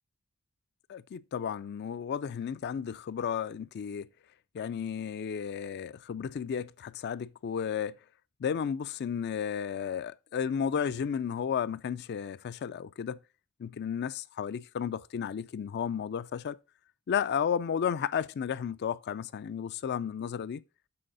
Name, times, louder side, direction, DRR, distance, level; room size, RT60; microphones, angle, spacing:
voice 1, 0.9-4.1 4.5-8.0 8.4-13.2 13.6-16.6 17.1-20.6, left 7 dB, 50° left, 0.3 m, -33 dB
7.8 x 4.1 x 3.8 m
head